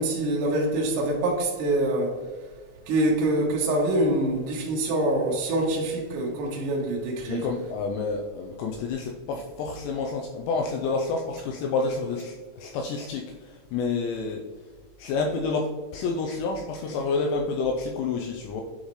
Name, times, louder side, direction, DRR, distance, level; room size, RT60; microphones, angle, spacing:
voice 1, 0.0-2.2 2.9-7.5, right 1 dB, 70° right, 2.1 m, -25 dB
voice 2, 7.3-14.4 15.0-18.6, left 4 dB, 85° left, 2.6 m, -29 dB
9.5 x 4.0 x 3.1 m
omnidirectional pair, 5.5 m